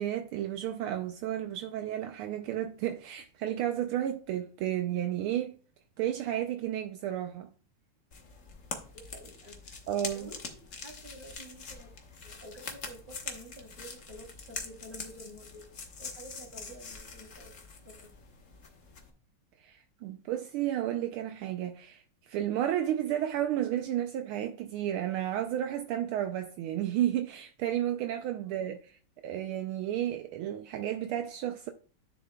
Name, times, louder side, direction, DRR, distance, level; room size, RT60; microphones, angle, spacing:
voice 1, 0.0-5.6 6.0-7.5 9.9-10.3 19.6-31.7, right 11 dB, 75° right, 1.4 m, -32 dB
sound 1, 8.1-19.1, left 4 dB, 40° left, 1.3 m, -44 dB
voice 2, 8.9-11.9 12.2-17.6 17.8-18.1 28.4-28.7, right 1 dB, 20° right, 3.0 m, -50 dB
10.0 x 7.0 x 2.3 m
omnidirectional pair, 2.4 m